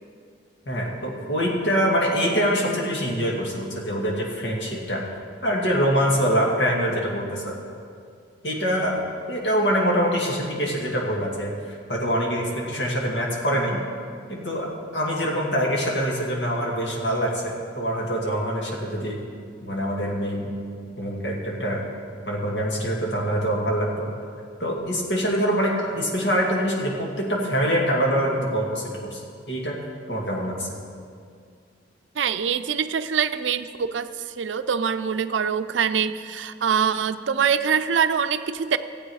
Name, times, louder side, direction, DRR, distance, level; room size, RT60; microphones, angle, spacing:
voice 1, 0.7-5.1 5.4-7.6 8.4-9.0 9.3-13.8 14.3-19.2 19.6-20.5 21.0-21.8 22.2-24.1 24.6-29.2 29.5-29.8 30.1-30.8, equal, 65° left, -2 dB, 2.2 m, -24 dB
voice 2, 32.2-38.8, right 7 dB, 85° right, 11 dB, 0.5 m, -24 dB
15.5 x 8.4 x 4.8 m, 2.2 s
head